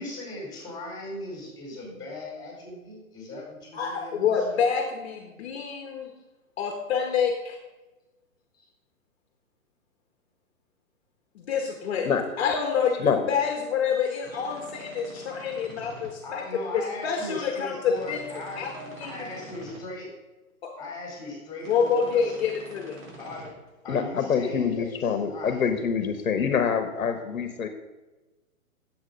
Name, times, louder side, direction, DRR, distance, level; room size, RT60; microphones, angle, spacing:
voice 1, 0.0-4.6 6.0-6.1 8.5-8.6 16.2-18.6 19.0-20.1 20.8-22.4 23.2-23.5 23.8-25.7, left 2 dB, 10° left, -1 dB, 4.2 m, -38 dB
voice 2, 3.7-6.1 6.6-7.6 11.3-12.1 12.4-13.0 13.3-16.4 16.7-18.2 18.5-19.3 20.6-20.7 21.7-23.0, left 6 dB, 50° left, 4 dB, 1.3 m, -27 dB
sound 1, 14.2-16.1 17.9-19.8 21.6-23.5, right 1 dB, 65° right, 4.0 m, -46 dB
voice 3, 23.9-27.7, left 6 dB, 75° left, 8 dB, 1.2 m, -25 dB
9.8 x 7.7 x 5.3 m, 1.1 s
hypercardioid pair, 135°, 42 cm